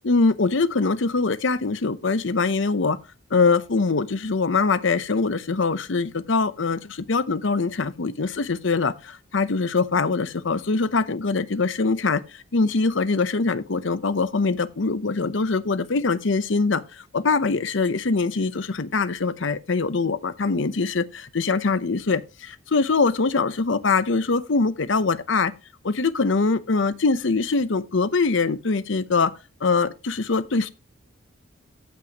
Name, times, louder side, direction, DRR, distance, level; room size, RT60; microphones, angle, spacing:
voice 1, 0.0-3.0 3.3-16.8 17.1-25.5 25.8-29.3 29.6-30.7, left 4 dB, 70° left, 0.7 m, -23 dB
14.5 x 6.0 x 2.9 m
head